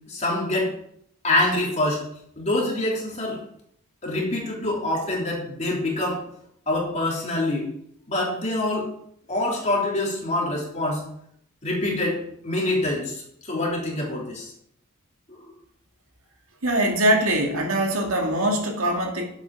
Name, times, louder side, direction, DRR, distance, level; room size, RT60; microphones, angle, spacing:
voice 1, 0.1-0.7 1.2-2.0 2.4-3.4 4.0-6.2 6.7-7.7 8.1-8.9 9.3-11.0 11.6-14.5 15.4-15.5, left 1 dB, 35° left, -3 dB, 3.4 m, -25 dB
voice 2, 16.6-19.2, right 1 dB, 70° right, 2 dB, 2.3 m, -22 dB
10.5 x 8.2 x 4.8 m, 0.69 s
head